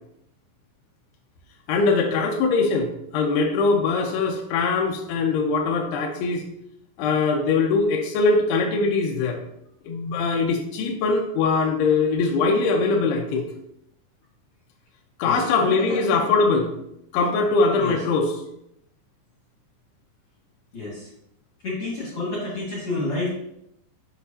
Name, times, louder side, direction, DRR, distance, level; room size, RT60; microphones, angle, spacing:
voice 1, 1.7-6.4 7.0-9.4 9.9-13.4 15.2-16.7 17.1-18.3, left 4 dB, 80° left, 1 dB, 2.4 m, -22 dB
voice 2, 15.2-16.2 17.7-17.9 20.7-21.1 21.6-23.3, left 2 dB, 50° left, -6 dB, 1.7 m, -30 dB
7.9 x 6.0 x 2.8 m, 0.79 s
omnidirectional pair, 5.3 m